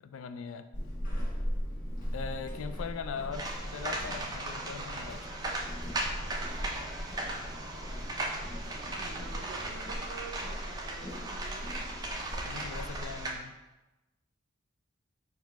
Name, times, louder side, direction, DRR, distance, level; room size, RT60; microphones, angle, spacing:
voice 1, 0.0-0.7 2.1-5.2 12.4-13.5, left 6 dB, 70° left, 9 dB, 0.3 m, -40 dB
Walk footsteps / Squeak, 0.7-13.4, equal, 40° left, 1.0 m, -39 dB
sound 1, 3.3-13.3, right 2 dB, 20° right, 0.4 m, -38 dB
voice 2, 6.2-6.9 8.9-11.8, right 5 dB, 75° right, 6 dB, 0.4 m, -48 dB
4.6 x 2.3 x 4.5 m, 1.1 s
head